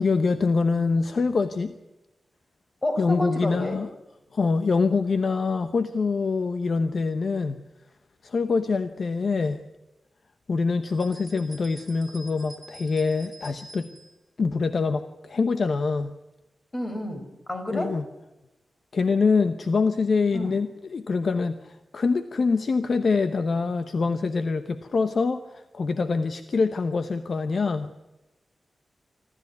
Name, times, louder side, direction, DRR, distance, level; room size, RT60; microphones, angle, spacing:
voice 1, 0.0-1.7 3.0-3.9 4.3-7.6 8.2-9.6 10.5-13.9 14.4-16.1 17.7-18.0 18.9-27.9, left 4 dB, 55° left, 10 dB, 0.9 m, -25 dB
voice 2, 2.8-3.8 16.7-18.0 20.3-20.6, left 1 dB, 30° left, 6 dB, 4.4 m, -30 dB
sound 1, 10.8-14.2, right 1 dB, 10° right, 4.0 m, -47 dB
26.0 x 13.5 x 9.5 m, 1.0 s
wide cardioid pair, 130°, 0 cm